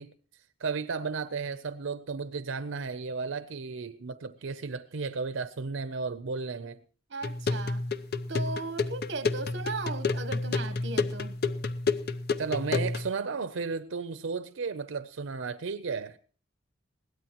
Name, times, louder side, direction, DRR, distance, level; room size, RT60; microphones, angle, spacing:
voice 1, 0.0-6.8 12.4-16.2, right 4 dB, 90° right, 0.6 m, -34 dB
voice 2, 7.1-7.8 8.3-11.4, right 3 dB, 60° right, 1.1 m, -37 dB
sound 1, 7.2-13.1, left 3 dB, 55° left, 0.6 m, -30 dB
21.5 x 16.5 x 3.0 m
head